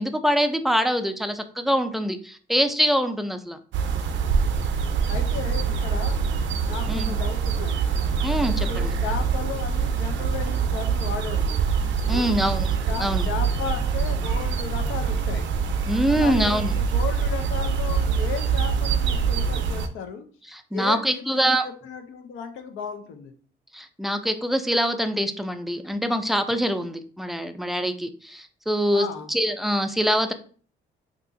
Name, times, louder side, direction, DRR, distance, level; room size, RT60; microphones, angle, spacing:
voice 1, 0.0-3.6 6.9-7.1 8.2-8.9 12.1-12.7 13.0-13.2 15.9-16.7 20.5-21.6 23.7-30.3, equal, ahead, 8 dB, 0.3 m, -24 dB
sound 1, 3.7-19.9, right 6 dB, 70° right, 0.5 m, -24 dB
voice 2, 5.1-6.2 6.6-7.9 8.4-11.7 12.1-12.4 12.9-15.5 16.1-20.2 20.7-23.3 28.9-29.3, left 6 dB, 85° left, 6 dB, 0.6 m, -35 dB
2.9 x 2.5 x 3.6 m, 0.43 s
cardioid pair, 90°, 20 cm